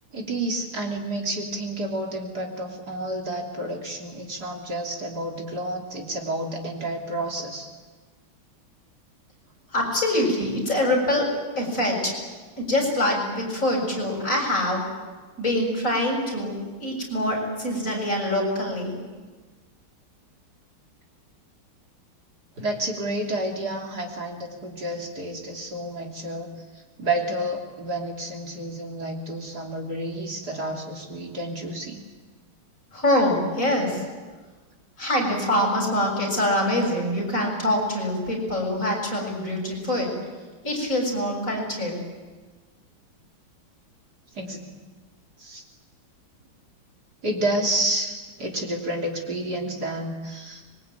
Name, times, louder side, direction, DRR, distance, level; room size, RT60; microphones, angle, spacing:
voice 1, 0.1-7.7 22.6-32.0 44.3-44.6 45.4-45.6 47.2-50.6, right 1 dB, 50° right, 1 dB, 3.6 m, -30 dB
voice 2, 9.7-12.1 12.6-14.9 15.4-19.0 32.9-34.0 35.0-40.1 40.6-42.0, left 1 dB, 35° left, 1 dB, 7.3 m, -24 dB
25.5 x 22.5 x 9.2 m, 1.3 s
omnidirectional pair, 2.3 m